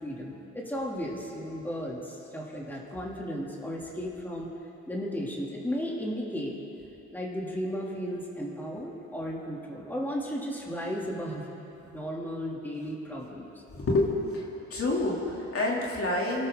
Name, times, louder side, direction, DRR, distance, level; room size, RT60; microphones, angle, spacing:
voice 1, 0.0-4.5 4.9-6.5 7.1-11.4 11.8-13.5, equal, 5° left, -3 dB, 2.9 m, -34 dB
voice 2, 13.7-16.5, left 2 dB, 50° left, -3 dB, 3.1 m, -28 dB
28.5 x 12.5 x 3.9 m, 2.9 s
cardioid pair, 90°, 30 cm